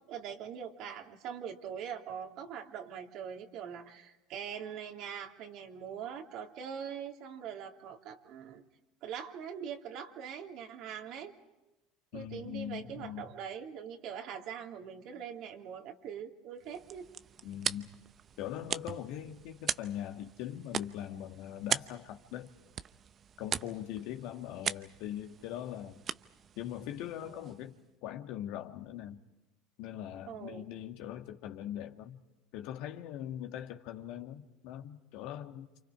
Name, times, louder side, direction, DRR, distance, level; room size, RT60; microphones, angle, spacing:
voice 1, 0.1-8.6 9.0-11.3 12.1-17.1 27.2-27.5 30.3-30.7, right 8 dB, 60° right, 3.1 m, -42 dB
voice 2, 12.1-13.3 17.4-17.9 18.4-22.5 23.4-26.0 26.6-27.8 28.0-29.2 29.8-32.2 32.5-35.7, left 11 dB, 65° left, 2.0 m, -41 dB
sound 1, 16.6-27.8, right 8 dB, 40° right, 0.8 m, -40 dB
29.0 x 27.5 x 5.0 m
hypercardioid pair, 80°, 0 cm